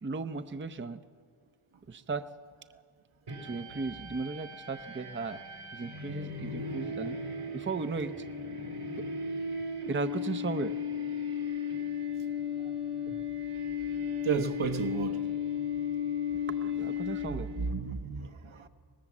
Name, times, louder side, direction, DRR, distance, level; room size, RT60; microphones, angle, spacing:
voice 1, 0.0-1.0 1.9-2.3 3.4-5.4 5.7-7.2 7.5-8.3 9.9-10.8 16.5-17.5, right 4 dB, 25° right, 0.7 m, -36 dB
sound 1, 3.3-17.7, left 6 dB, 85° right, 3.6 m, -35 dB
voice 2, 14.2-15.2 17.6-18.7, right 6 dB, 70° right, 1.5 m, -32 dB
24.5 x 19.0 x 7.3 m
wide cardioid pair, 80°, 50 cm